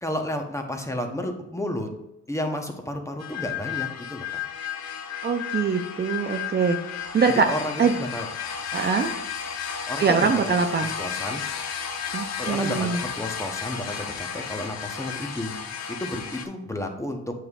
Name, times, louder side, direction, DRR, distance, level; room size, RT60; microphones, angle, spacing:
voice 1, 0.0-1.9 2.3-4.4 7.3-8.3 9.9-10.4 10.8-11.4 12.4-17.2, left 1 dB, 10° left, 4 dB, 0.9 m, -32 dB
sound 1, 3.2-16.5, left 7 dB, 60° left, 0.8 m, -33 dB
voice 2, 5.2-6.8 7.1-7.5 7.8-7.9 8.7-9.2 10.0-10.9 12.1-13.0, right 5 dB, 35° right, 5 dB, 0.5 m, -23 dB
7.8 x 5.1 x 2.4 m, 0.90 s
cardioid pair, 90°, 30 cm